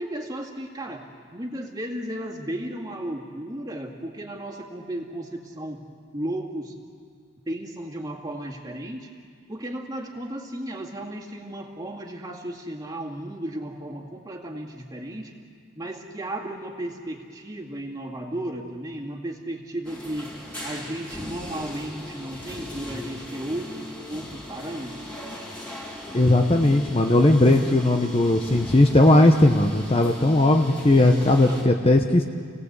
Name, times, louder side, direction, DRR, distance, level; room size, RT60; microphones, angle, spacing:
voice 1, 0.0-5.8 6.1-6.8 7.5-9.1 9.5-15.4 15.8-20.3 20.6-25.2 31.4-31.6, right 1 dB, 15° right, 0 dB, 2.1 m, -34 dB
sound 1, 19.8-31.6, left 1 dB, 5° left, 3.0 m, -38 dB
voice 2, 26.1-32.2, left 1 dB, 25° left, 4 dB, 0.9 m, -18 dB
29.5 x 18.0 x 8.2 m, 2.1 s
head